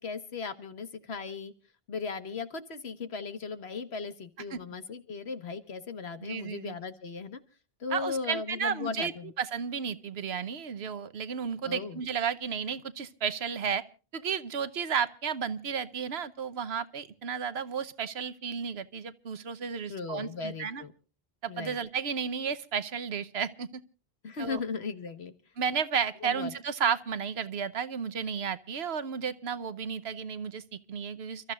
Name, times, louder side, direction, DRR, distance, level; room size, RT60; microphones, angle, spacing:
voice 1, 0.0-1.5 1.9-7.4 7.8-9.3 11.6-12.0 19.9-20.9 21.5-21.8 24.2-25.3 26.2-26.5, left 5 dB, 80° left, 1.6 m, -37 dB
voice 2, 6.2-6.7 7.9-9.1 9.4-13.8 14.1-20.8 21.4-23.8 24.4-24.6 25.6-31.5, right 7 dB, 80° right, 1.2 m, -33 dB
30.0 x 13.5 x 2.4 m
omnidirectional pair, 1.1 m